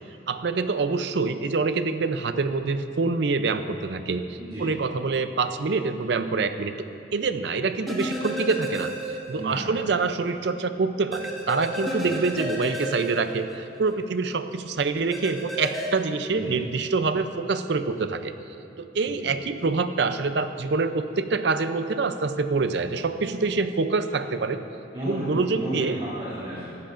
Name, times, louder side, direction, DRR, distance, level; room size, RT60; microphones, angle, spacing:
voice 1, 0.3-6.7 7.1-8.9 9.3-18.3 18.8-24.6 25.1-26.0, right 4 dB, 65° right, 10 dB, 0.5 m, -26 dB
voice 2, 4.4-4.8 9.4-9.7 12.1-12.2 16.3-16.6 19.1-19.3 24.9-26.8, right 1 dB, 30° right, -12 dB, 2.7 m, -33 dB
sound 1, 7.9-9.6 9.9-10.0 11.1-13.9 15.1-15.9, right 1 dB, ahead, 1.5 m, -32 dB
17.5 x 13.0 x 2.5 m, 3.0 s
head